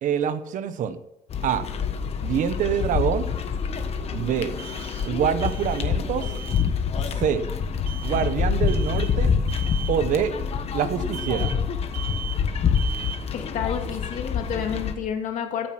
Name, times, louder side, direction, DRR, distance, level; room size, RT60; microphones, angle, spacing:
voice 1, 0.0-1.0 1.4-1.7 2.2-3.3 4.1-4.5 5.0-6.3 7.2-7.5 8.0-9.3 9.9-10.3 10.7-11.5, right 8 dB, 65° right, 12 dB, 1.1 m, -25 dB
sound 1, 1.3-15.0, left 6 dB, 45° left, 1.2 m, -26 dB
sound 2, 1.3-1.4 4.6-5.2 5.4-6.0 6.2-6.7 7.9-8.4 8.7-9.2 9.5-10.0 11.1-11.7 11.9-12.5 12.7-13.3, right 10 dB, 85° right, 0.8 m, -38 dB
voice 2, 13.3-15.7, left 8 dB, 65° left, 3 dB, 2.6 m, -30 dB
14.0 x 9.2 x 6.0 m, 0.86 s
cardioid pair, 160°, 14 cm